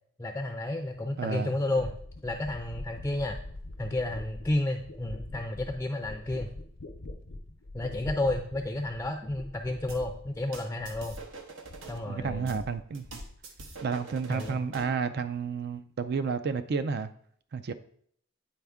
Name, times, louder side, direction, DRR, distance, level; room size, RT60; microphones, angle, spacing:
voice 1, 0.2-1.9 2.2-3.4 3.8-6.5 7.7-11.2 11.9-12.7 14.3-14.6, left 1 dB, 15° left, 0.4 m, -31 dB
sound 1, 0.9-1.0 1.7-11.4 11.6-12.5 12.8-13.7 13.9-14.4, left 2 dB, 80° left, 0.7 m, -44 dB
voice 2, 1.2-1.6 12.1-13.2 13.8-17.1 17.5-17.7, right 5 dB, 55° right, 0.4 m, -31 dB
sound 2, 9.9-12.0 12.5-15.0, right 3 dB, 85° right, 1.0 m, -45 dB
9.3 x 4.2 x 3.6 m
head